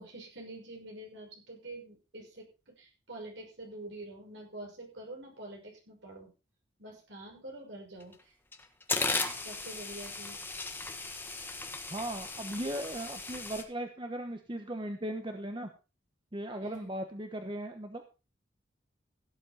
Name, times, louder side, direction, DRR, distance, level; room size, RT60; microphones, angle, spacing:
voice 1, 0.0-6.3 6.8-8.3 9.4-10.4 16.6-16.9, right 1 dB, 60° right, -1 dB, 6.2 m, -46 dB
sound 1, 8.0-8.1 8.5-13.6, left 3 dB, 10° left, 1.5 m, -36 dB
voice 2, 11.9-15.7 16.3-18.0, right 1 dB, 25° right, 6 dB, 1.1 m, -37 dB
17.0 x 8.4 x 4.3 m, 0.32 s
head